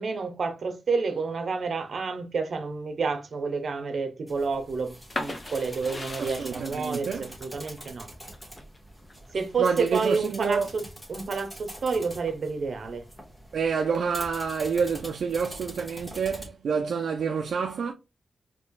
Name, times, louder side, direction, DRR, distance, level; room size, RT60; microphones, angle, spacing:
voice 1, 0.0-8.1 9.3-10.8 11.1-13.0, right 4 dB, 65° right, 0.8 m, -29 dB
sound 1, 4.3-16.5, equal, 5° left, 1.3 m, -45 dB
sound 2, 5.1-10.7 11.2-12.0, left 2 dB, 35° left, 0.9 m, -39 dB
voice 2, 6.2-7.3 9.6-10.7 13.5-17.9, right 6 dB, 80° right, 0.4 m, -28 dB
4.3 x 2.9 x 2.3 m
wide cardioid pair, 105°, 0 cm